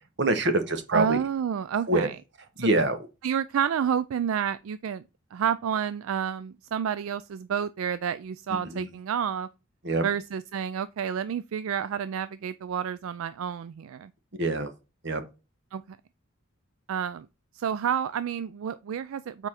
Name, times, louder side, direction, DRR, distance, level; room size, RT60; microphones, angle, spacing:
voice 1, 0.2-1.2 1.9-2.1 2.6-3.0 8.7-8.9 9.8-10.0 14.4-14.7 15.0-15.2, right 2 dB, 55° right, 1.1 m, -25 dB
voice 2, 0.9-2.2 2.6-2.7 3.2-5.0 5.3-9.5 10.0-14.1 15.7-16.0 16.9-17.3 17.5-19.5, right 8 dB, 75° right, 0.3 m, -29 dB
6.8 x 4.6 x 4.2 m
head